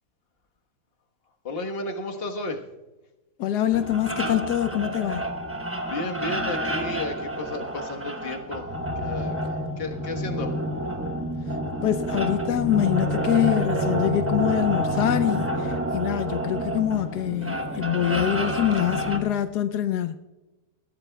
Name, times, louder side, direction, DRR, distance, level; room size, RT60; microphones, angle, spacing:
voice 1, 1.4-2.6 5.9-8.7 9.0-9.4 9.8-10.5, left 2 dB, 40° left, 1.4 m, -33 dB
voice 2, 3.4-5.2 11.8-20.2, left 11 dB, 80° left, 1.2 m, -25 dB
sound 1, 3.7-19.2, equal, 10° right, 0.6 m, -29 dB
20.5 x 15.5 x 2.3 m
omnidirectional pair, 1.8 m